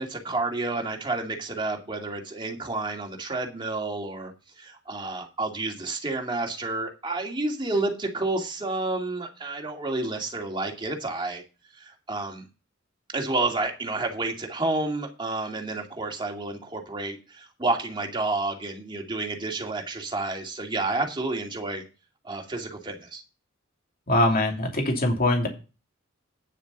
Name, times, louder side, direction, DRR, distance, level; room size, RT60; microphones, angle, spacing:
voice 1, 0.0-4.3 4.6-11.4 11.8-12.4 13.1-21.8 22.2-23.2, right 2 dB, 25° right, 1 dB, 2.4 m, -30 dB
voice 2, 24.1-25.5, left 1 dB, 45° left, 2 dB, 2.8 m, -22 dB
9.6 x 7.2 x 5.3 m, 0.32 s
head